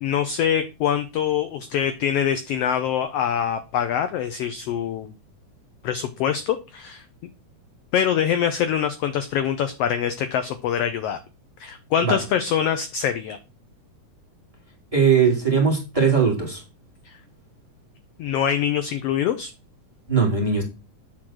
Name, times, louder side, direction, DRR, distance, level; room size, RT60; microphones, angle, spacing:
voice 1, 0.0-5.1 5.8-7.0 7.9-11.2 11.6-13.4 17.0-17.1 18.2-19.5, left 9 dB, 75° left, 9 dB, 1.4 m, -24 dB
voice 2, 14.9-16.6 20.1-20.6, right 6 dB, 10° right, 0 dB, 2.6 m, -19 dB
8.9 x 3.8 x 6.2 m, 0.29 s
omnidirectional pair, 3.5 m